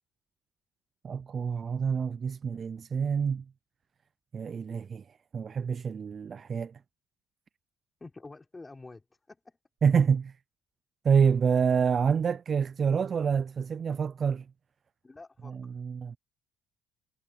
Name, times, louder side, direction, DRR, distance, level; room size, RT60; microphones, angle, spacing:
voice 1, 1.0-3.4 4.3-5.0 5.3-6.7 9.8-10.3 11.0-14.4 15.8-16.2, right 6 dB, 40° right, 0.4 m, -27 dB
voice 2, 8.0-9.6 15.0-15.8, left 3 dB, 20° left, 3.5 m, -48 dB
cardioid pair, 110°, 0 cm